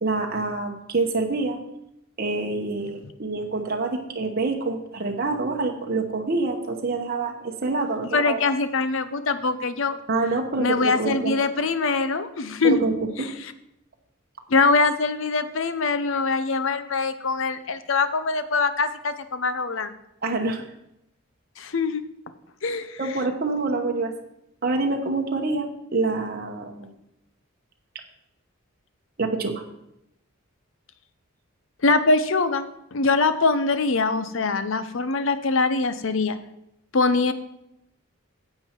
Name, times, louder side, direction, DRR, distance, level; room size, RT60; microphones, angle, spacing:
voice 1, 0.0-1.6 2.2-8.5 10.1-11.3 12.6-13.3 20.2-20.6 23.0-24.1 24.6-26.9 29.2-29.6, right 3 dB, 45° right, 2 dB, 1.0 m, -26 dB
voice 2, 8.1-10.0 10.6-12.8 13.2-13.5 14.5-19.9 21.6-22.0 22.6-23.0 31.8-36.4 36.9-37.3, left 3 dB, 65° left, 12 dB, 0.7 m, -23 dB
9.8 x 7.8 x 4.5 m, 0.82 s
head